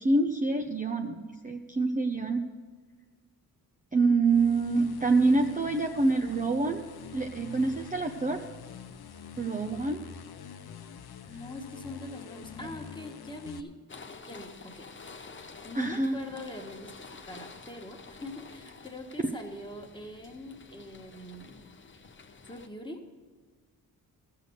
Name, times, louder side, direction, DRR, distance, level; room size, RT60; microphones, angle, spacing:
voice 1, 0.0-2.4 3.9-6.8 7.1-8.4 9.4-10.0 15.7-16.2, right 3 dB, 20° right, 3 dB, 0.7 m, -26 dB
sound 1, 4.2-13.6, left 8 dB, 75° left, 0.8 m, -46 dB
voice 2, 11.3-13.7 14.3-14.9 15.6-21.6 22.5-23.0, left 1 dB, 10° left, 2 dB, 1.6 m, -43 dB
sound 2, 13.9-22.7, left 4 dB, 30° left, 0.8 m, -49 dB
13.5 x 6.8 x 8.0 m, 1.5 s
cardioid pair, 70°, 38 cm